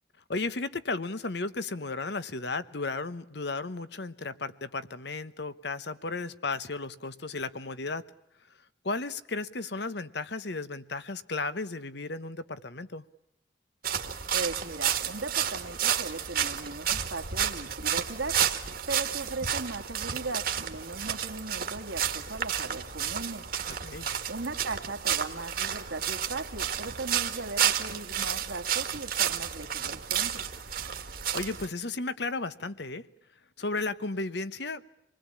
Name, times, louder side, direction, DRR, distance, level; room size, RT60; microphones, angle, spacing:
voice 1, 0.3-8.0 8.8-13.0 23.8-24.1 31.3-33.0 33.6-35.0, left 3 dB, 60° left, 1.0 m, -34 dB
sound 1, 13.8-31.7, right 9 dB, 50° right, 1.7 m, -31 dB
voice 2, 14.3-23.5 24.3-30.5, right 3 dB, 75° right, 1.8 m, -38 dB
27.0 x 20.5 x 8.6 m
head